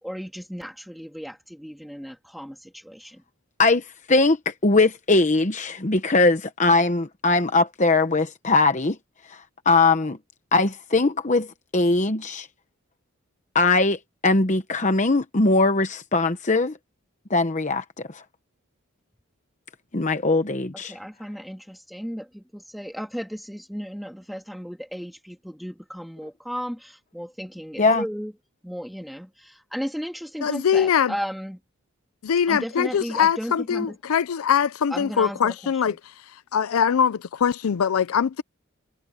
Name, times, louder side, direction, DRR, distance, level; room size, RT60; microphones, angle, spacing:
voice 1, 0.0-3.2 20.7-28.3 28.6-31.6 32.5-34.0 34.9-36.0, equal, ahead, 2.9 m, -35 dB
voice 2, 3.6-9.0 9.3-10.2 10.5-11.5 11.7-12.5 13.5-16.7 17.3-18.2 19.9-21.0 27.8-28.0, left 3 dB, 35° left, 1.0 m, -21 dB
voice 3, 30.4-31.1 32.2-36.0 36.5-38.4, left 7 dB, 80° left, 0.4 m, -22 dB
head